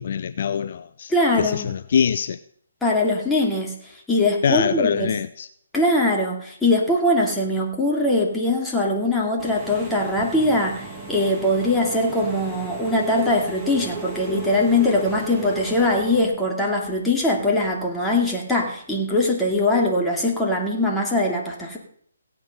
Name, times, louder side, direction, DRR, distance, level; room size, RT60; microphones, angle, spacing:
voice 1, 0.0-1.1 1.4-2.4 4.4-5.5, left 7 dB, 50° left, 0.6 m, -24 dB
voice 2, 1.1-1.7 2.8-3.7 4.1-5.1 5.7-21.8, left 1 dB, 5° left, 2.6 m, -21 dB
Engine / Mechanisms, 9.4-16.3, right 2 dB, 10° right, 2.5 m, -35 dB
16.5 x 9.0 x 5.4 m
hypercardioid pair, 150°, 0 cm